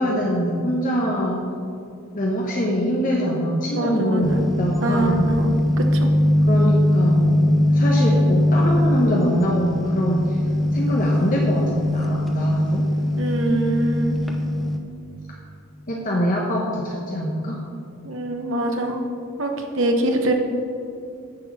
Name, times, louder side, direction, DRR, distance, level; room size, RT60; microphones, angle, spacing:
voice 1, 0.0-1.4 2.1-5.3 6.5-10.4 10.7-12.9 15.3-15.4 15.9-17.6, equal, 40° left, -2 dB, 1.0 m, -23 dB
voice 2, 3.7-4.5 4.8-5.5 5.9-6.1 13.2-14.2 18.0-19.0 19.4-20.3, right 1 dB, 60° right, 3 dB, 1.0 m, -24 dB
sound 1, 4.2-14.8, left 1 dB, ahead, 0.7 m, -21 dB
9.5 x 4.4 x 7.2 m, 2.5 s
head